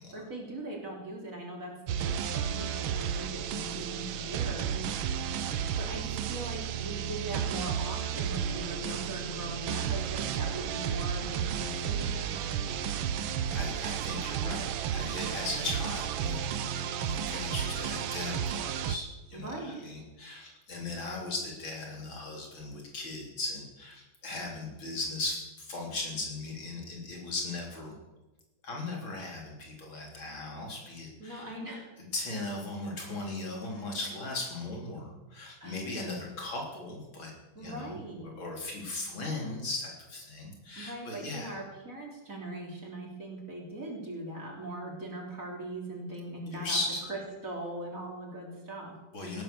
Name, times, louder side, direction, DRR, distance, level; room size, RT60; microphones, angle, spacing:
voice 1, 0.1-4.9 5.8-12.3 19.3-19.8 31.2-31.9 33.7-33.8 35.6-35.8 37.6-38.3 40.8-46.8 47.1-48.9, right 1 dB, 40° right, -1 dB, 4.0 m, -40 dB
sound 1, 1.9-19.0, right 8 dB, 80° right, 1.6 m, -33 dB
voice 2, 13.5-27.9 28.6-31.5 32.1-37.3 37.6-38.0 38.2-41.6 46.5-47.0 49.1-49.4, left 2 dB, 80° left, -1 dB, 4.5 m, -38 dB
17.5 x 11.0 x 6.9 m, 1.1 s
omnidirectional pair, 2.2 m